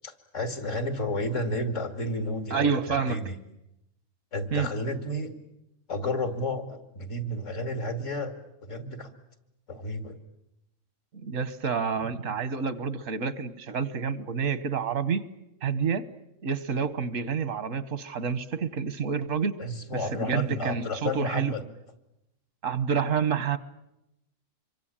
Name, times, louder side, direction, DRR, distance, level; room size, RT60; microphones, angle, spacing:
voice 1, 0.0-3.3 4.3-5.3 5.9-8.4 8.6-9.1 9.7-10.2 19.6-21.6, left 1 dB, 75° left, 7 dB, 2.7 m, -31 dB
voice 2, 2.5-3.3 4.5-4.7 11.2-15.2 15.6-16.0 16.4-19.6 19.9-21.5 22.6-23.6, right 6 dB, 80° right, 15 dB, 1.6 m, -28 dB
26.0 x 23.5 x 8.8 m, 0.87 s
omnidirectional pair, 1.3 m